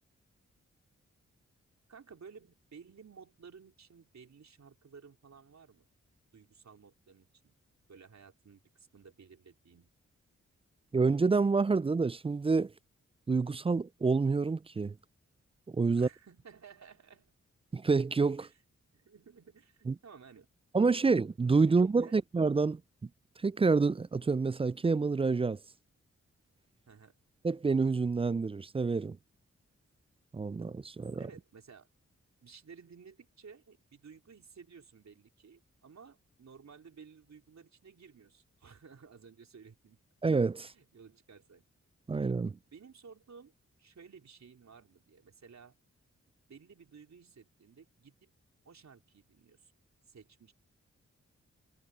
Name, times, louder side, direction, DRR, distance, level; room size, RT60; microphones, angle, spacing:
voice 1, 1.9-5.9 6.3-7.5 7.9-9.9 15.9-17.3 18.4-18.6 18.9-20.5 21.6-22.2 26.9-27.2 31.2-31.9 32.4-40.0 40.6-41.6 42.7-43.5 43.8-45.7 46.5-48.3 48.6-49.7 50.1-50.5, right 6 dB, 65° right, 3.9 m, -55 dB
voice 2, 10.9-12.7 13.3-14.9 15.7-16.1 17.7-18.5 19.9-20.0 20.7-22.8 23.4-25.6 27.4-29.2 30.3-31.2 40.2-40.7 42.1-42.5, right 4 dB, 20° right, 0.3 m, -28 dB
cardioid pair, 45°, 29 cm